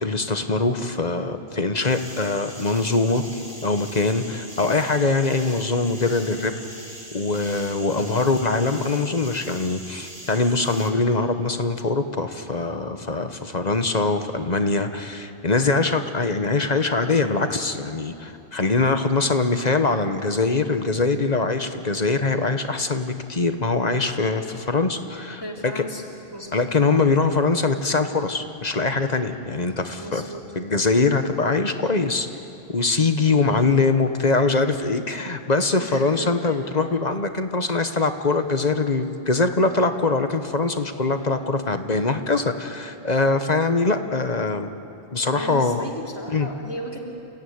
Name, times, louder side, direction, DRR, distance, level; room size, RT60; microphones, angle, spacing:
voice 1, 0.0-3.2 3.6-6.5 7.1-25.8 26.5-30.2 30.5-32.3 32.7-44.7 45.1-45.8 46.3-46.5, left 3 dB, 40° left, 8 dB, 1.2 m, -23 dB
sound 1, 1.8-10.9, right 1 dB, 30° right, 3.2 m, -41 dB
voice 2, 7.9-8.3 25.4-26.0 26.3-26.7 29.9-30.4 35.8-36.7 45.4-47.1, left 1 dB, 20° left, -2 dB, 2.9 m, -35 dB
30.0 x 16.0 x 9.6 m, 2.7 s
omnidirectional pair, 1.1 m